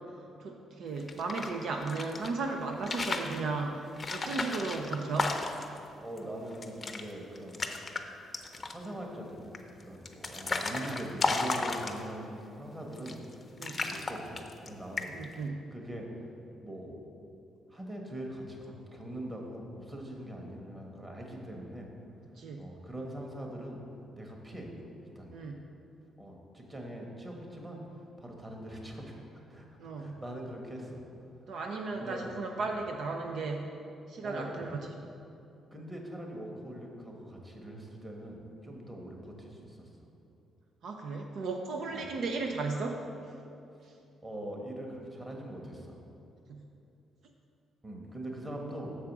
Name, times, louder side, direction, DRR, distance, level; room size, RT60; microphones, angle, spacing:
voice 1, 0.4-5.4 13.6-13.8 15.1-15.6 22.4-22.7 25.3-25.6 29.8-30.2 31.5-33.7 34.1-34.8 40.8-43.0 46.5-46.7, right 3 dB, 70° right, 3 dB, 0.5 m, -35 dB
sound 1, 1.0-2.3 2.7-3.4 4.0-5.8 6.2-6.3 6.5-7.0 7.3-8.0 8.3-8.9 9.5-12.3 12.9-13.3 13.6-14.7 15.0-15.3, left 3 dB, 30° left, 0.6 m, -34 dB
voice 2, 6.0-7.6 8.5-9.4 9.8-13.2 13.6-15.3 15.7-16.1 16.6-17.0 17.7-21.9 22.6-23.8 24.2-24.7 25.0-25.4 26.2-29.2 29.5-31.0 31.3-31.5 31.9-32.2 34.2-34.7 35.7-39.9 41.9-42.1 44.2-46.0 47.8-48.9, right 1 dB, 20° right, 0 dB, 1.3 m, -42 dB
6.8 x 4.8 x 6.0 m, 2.7 s
cardioid pair, 90°, 0 cm